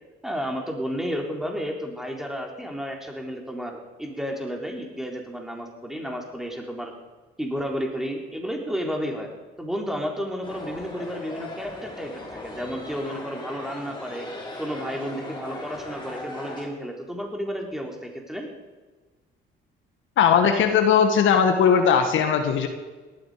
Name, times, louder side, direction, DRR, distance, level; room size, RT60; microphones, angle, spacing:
voice 1, 0.2-6.9 7.4-9.3 9.6-14.3 14.6-18.5, equal, ahead, 1 dB, 3.8 m, -32 dB
sound 1, 10.4-16.7, left 2 dB, 25° left, 5.3 m, -38 dB
voice 2, 20.2-22.7, left 7 dB, 75° left, 6 dB, 1.8 m, -19 dB
18.0 x 13.0 x 5.1 m, 1.3 s
cardioid pair, 90°, 20 cm